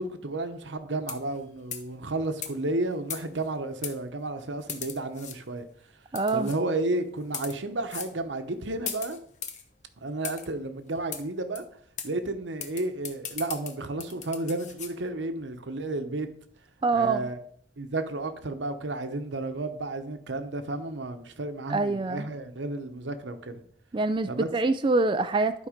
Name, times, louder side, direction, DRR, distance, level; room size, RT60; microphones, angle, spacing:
voice 1, 0.0-5.7 6.3-9.2 10.0-11.6 12.0-16.3 16.9-17.4 17.8-23.6 24.3-24.5, right 2 dB, 80° right, 1.0 m, -32 dB
sound 1, 1.0-1.4 1.7-1.9 2.4-2.5 3.1-3.5 3.8-4.0 4.7-5.4 6.2-6.6 7.2-7.6 7.9-8.1 8.9-9.6 10.2-10.5 11.1-11.2 11.6-11.7 12.0-12.1 12.6-14.9, left 8 dB, 40° left, 0.8 m, -37 dB
voice 2, 6.1-6.5 16.8-17.3 21.7-22.3 23.9-25.7, right 3 dB, 25° right, 0.4 m, -25 dB
11.5 x 4.6 x 5.1 m
head